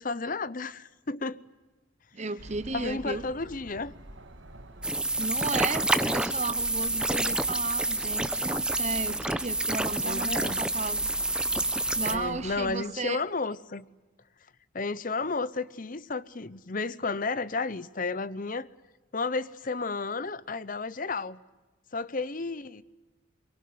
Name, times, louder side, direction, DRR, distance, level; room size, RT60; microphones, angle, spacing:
voice 1, 0.0-1.4 2.7-3.9 10.0-10.6 12.1-13.9 14.7-18.7 19.1-21.4 21.9-22.8, left 3 dB, 40° left, 0.8 m, -32 dB
voice 2, 2.1-3.2 5.2-11.0 11.9-13.2, right 4 dB, 35° right, 0.8 m, -34 dB
sound 1, 2.4-12.7, right 1 dB, 65° right, 2.2 m, -46 dB
sound 2, 4.8-12.2, right 2 dB, 5° right, 0.8 m, -28 dB
23.5 x 23.0 x 9.5 m
head